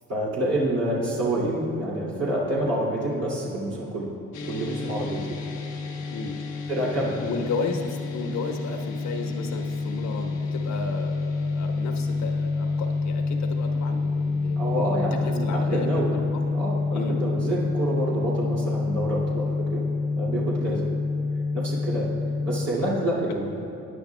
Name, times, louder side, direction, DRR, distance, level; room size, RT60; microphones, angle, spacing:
voice 1, 0.1-4.1 4.5-5.2 6.7-7.2 14.6-16.2 16.5-19.8 20.2-20.8 21.5-22.1 22.4-23.4, right 1 dB, 55° right, -7 dB, 2.8 m, -27 dB
sound 1, 4.3-22.7, left 3 dB, 90° left, 1.2 m, -28 dB
voice 2, 7.1-14.8 15.2-16.5 16.9-17.2 20.6-20.8 23.3-23.4, left 4 dB, 65° left, 4 dB, 1.3 m, -34 dB
20.5 x 10.0 x 2.3 m, 2.9 s
cardioid pair, 90°, 30 cm